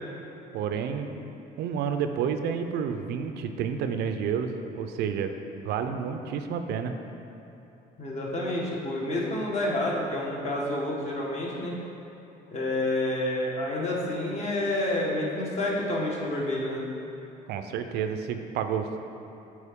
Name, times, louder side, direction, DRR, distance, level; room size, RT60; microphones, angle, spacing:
voice 1, 0.5-1.3 1.6-5.3 5.6-6.9 17.5-18.9, right 7 dB, 75° right, 7 dB, 0.5 m, -30 dB
voice 2, 8.0-11.8 12.5-16.8, left 1 dB, 40° left, -3 dB, 1.4 m, -29 dB
8.3 x 4.5 x 3.6 m, 2.9 s
cardioid pair, 110°, 17 cm